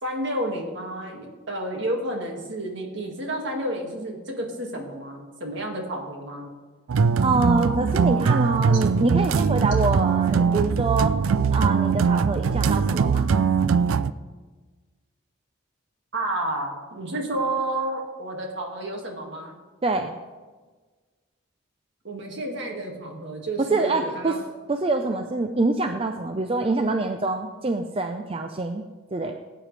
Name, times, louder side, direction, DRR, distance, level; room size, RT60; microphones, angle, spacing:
voice 1, 0.0-6.5 8.7-8.8 16.1-19.6 22.0-24.5, right 1 dB, 60° right, 1 dB, 2.1 m, -30 dB
sound 1, 6.9-14.1, right 5 dB, 85° right, 0.4 m, -21 dB
voice 2, 7.2-11.1 11.5-13.4 19.8-20.2 23.7-24.3 24.7-28.8 29.1-29.3, right 3 dB, 25° right, 5 dB, 0.5 m, -25 dB
17.0 x 9.1 x 3.3 m, 1.3 s
head